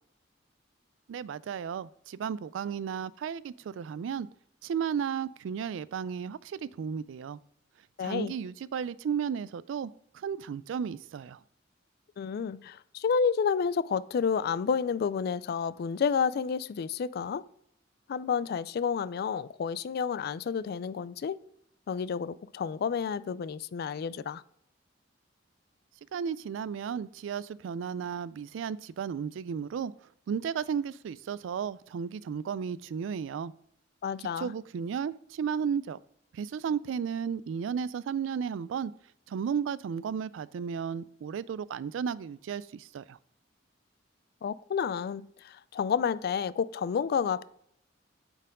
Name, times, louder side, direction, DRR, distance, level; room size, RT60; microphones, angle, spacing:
voice 1, 1.1-4.3 4.6-7.4 8.0-11.4 26.1-29.9 30.3-33.5 34.4-36.0 36.3-38.9 39.3-43.2, right 7 dB, 80° right, 0.3 m, -34 dB
voice 2, 8.0-8.3 12.2-17.4 18.1-21.4 21.9-24.4 34.0-34.5 44.4-47.4, left 6 dB, 55° left, 0.3 m, -30 dB
8.9 x 4.5 x 3.6 m
head